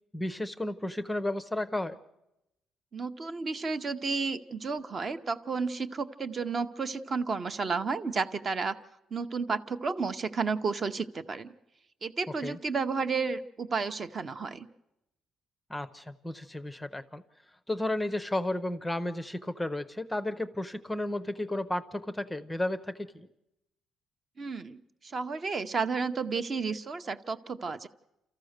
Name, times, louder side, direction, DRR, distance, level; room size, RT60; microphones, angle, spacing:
voice 1, 0.1-2.0 12.4-12.6 15.7-17.2 17.7-23.3, left 1 dB, 5° left, 11 dB, 0.6 m, -33 dB
voice 2, 2.9-8.8 9.1-11.5 12.0-14.7 24.4-27.9, right 4 dB, 30° right, 10 dB, 0.7 m, -32 dB
29.0 x 14.0 x 6.5 m, 0.91 s
cardioid pair, 160°, 0 cm